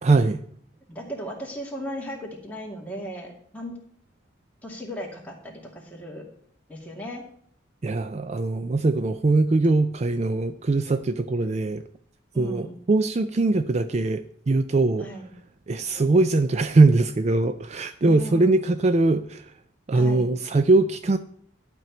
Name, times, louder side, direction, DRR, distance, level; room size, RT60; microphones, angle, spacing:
voice 1, 0.0-0.4 7.8-11.8 12.4-15.1 15.7-19.5 19.9-21.2, right 3 dB, 35° right, 11 dB, 0.4 m, -21 dB
voice 2, 0.9-3.8 4.6-6.2 6.7-7.2 12.3-12.7 15.0-15.3 18.0-18.6 19.9-20.3, equal, 10° left, -2 dB, 2.4 m, -36 dB
12.0 x 4.5 x 7.9 m, 0.63 s
head